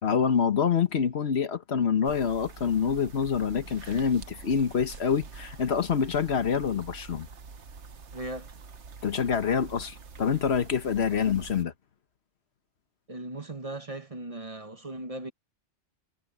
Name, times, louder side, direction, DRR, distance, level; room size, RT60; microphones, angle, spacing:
voice 1, 0.0-7.3 9.0-11.7, left 6 dB, 65° left, 1.4 m, -26 dB
sound 1, 2.0-11.6, right 5 dB, 80° right, 1.6 m, -46 dB
voice 2, 8.1-8.5 11.1-11.3 13.1-15.3, right 2 dB, 30° right, 1.1 m, -38 dB
omnidirectional pair, 1.2 m